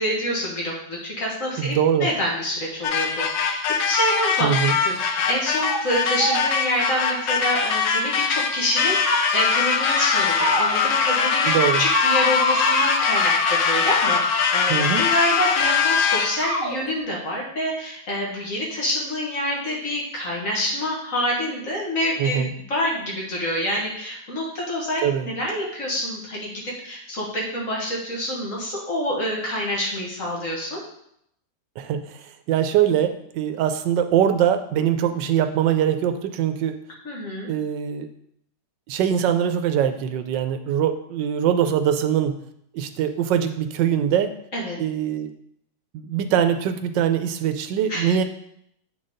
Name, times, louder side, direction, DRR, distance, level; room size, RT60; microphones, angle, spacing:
voice 1, 0.0-4.6 4.8-22.4 22.7-30.8 37.0-37.5 44.5-44.8 47.9-48.1, equal, 50° left, -4 dB, 1.9 m, -27 dB
voice 2, 1.6-2.1 4.4-4.8 11.5-11.8 14.7-15.0 22.2-22.5 25.0-25.3 31.8-36.8 37.5-38.1 38.9-42.4 42.7-44.3 44.8-45.3 45.9-48.2, right 9 dB, 85° right, 8 dB, 1.3 m, -22 dB
sound 1, 2.8-16.5, left 6 dB, 90° left, 1.4 m, -22 dB
sound 2, 4.3-4.6 5.0-5.3 5.6-5.8 6.2-8.1 8.6-9.2 9.8-10.8 11.0-14.6 15.6-15.7 16.4-16.7, equal, 35° right, 1.5 m, -28 dB
7.9 x 4.0 x 3.8 m, 0.73 s
omnidirectional pair, 1.9 m